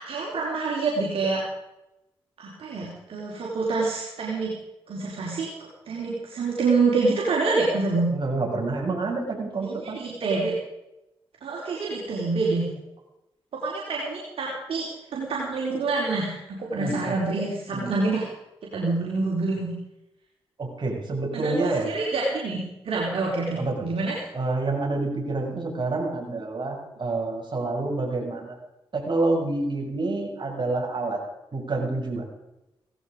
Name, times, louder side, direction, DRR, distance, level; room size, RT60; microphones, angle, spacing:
voice 1, 0.0-1.4 2.4-4.5 4.9-5.5 5.9-8.1 9.6-10.5 11.4-12.7 13.5-18.2 18.7-19.7 21.3-22.6 22.8-24.2, right 3 dB, 70° right, -4 dB, 4.6 m, -26 dB
voice 2, 8.1-10.0 16.8-17.2 17.7-17.9 20.6-21.9 23.6-23.9 24.3-28.6 28.9-31.2 31.5-32.3, right 2 dB, 50° right, 1 dB, 7.1 m, -28 dB
18.0 x 15.0 x 5.2 m, 0.92 s
supercardioid pair, 50°, 10 cm